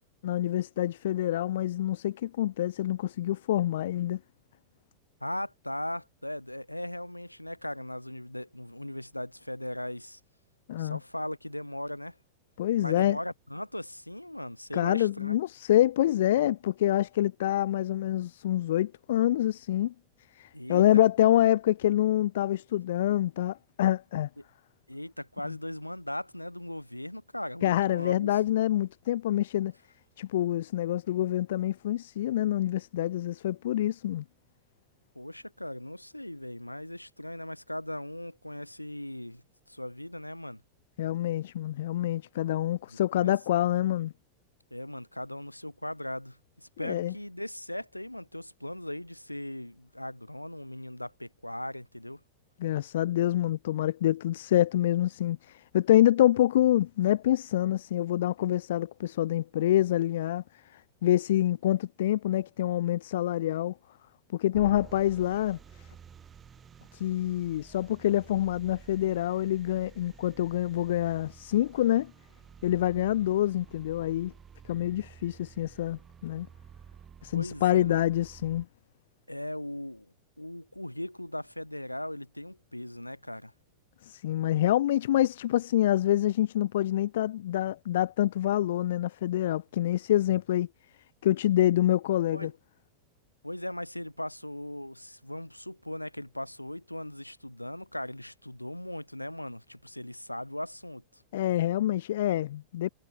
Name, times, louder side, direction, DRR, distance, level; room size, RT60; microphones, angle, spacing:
voice 1, 0.2-4.2 10.7-11.0 12.6-13.2 14.7-19.9 20.3-24.3 27.6-29.7 30.2-34.2 41.0-44.1 46.8-47.1 52.6-60.4 60.7-63.7 64.3-65.9 66.9-72.1 72.6-74.3 74.7-76.5 77.2-78.7 84.0-90.7 91.2-92.5 101.3-102.9, left 13 dB, 60° left, 0.3 m, -26 dB
voice 2, 5.2-10.2 10.7-12.2 12.8-15.4 20.5-20.8 24.9-28.3 35.2-39.4 39.7-40.6 42.9-43.3 44.7-52.2 77.3-78.0 79.3-83.5 92.3-92.5 93.4-101.2, left 1 dB, 85° left, 0.7 m, -38 dB
sound 1, 64.5-78.7, right 7 dB, 20° right, 1.6 m, -52 dB
figure-of-eight pair, 90°, 0 cm